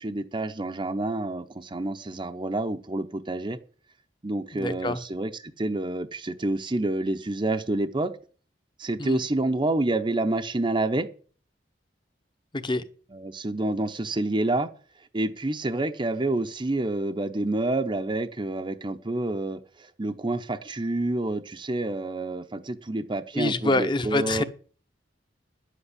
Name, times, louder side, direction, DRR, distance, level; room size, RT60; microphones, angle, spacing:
voice 1, 0.0-3.6 4.2-8.1 8.8-11.1 13.1-14.7 15.1-24.4, right 2 dB, 25° right, 0.7 m, -28 dB
voice 2, 4.5-5.0 9.0-9.2 12.5-12.8 23.3-24.4, left 2 dB, 25° left, 1.0 m, -26 dB
10.5 x 8.1 x 8.4 m
head